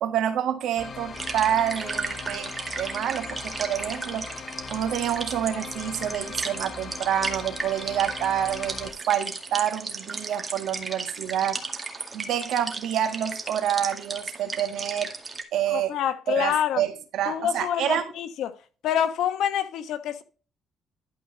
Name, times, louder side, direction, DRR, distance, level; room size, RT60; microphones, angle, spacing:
voice 1, 0.0-4.3 4.7-11.6 12.1-15.1 15.5-15.9 16.3-18.1, right 10 dB, 80° right, 1.7 m, -27 dB
sound 1, 0.8-8.9, left 5 dB, 45° left, 1.1 m, -40 dB
sound 2, 1.1-15.4, right 3 dB, 30° right, 2.0 m, -35 dB
voice 2, 15.7-16.8 17.2-18.5 18.8-20.2, left 10 dB, 80° left, 1.2 m, -27 dB
12.0 x 4.8 x 4.0 m
cardioid pair, 90°, 0 cm